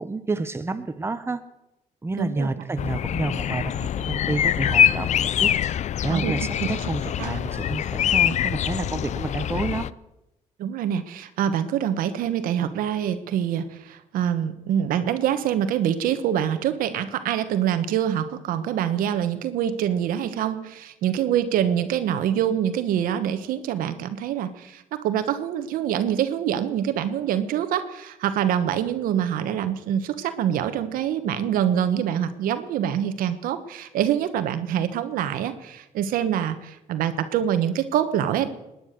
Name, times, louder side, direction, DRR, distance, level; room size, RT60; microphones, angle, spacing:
voice 1, 0.0-1.4 2.0-5.5 6.0-9.9, right 3 dB, 15° right, 10 dB, 1.1 m, -29 dB
voice 2, 2.2-2.5 6.1-6.3 7.2-7.4 10.6-38.5, right 10 dB, 85° right, 10 dB, 1.2 m, -25 dB
sound 1, 2.8-9.9, left 10 dB, 55° left, 0.5 m, -24 dB
20.0 x 10.0 x 6.6 m, 0.94 s
cardioid pair, 90°, 14 cm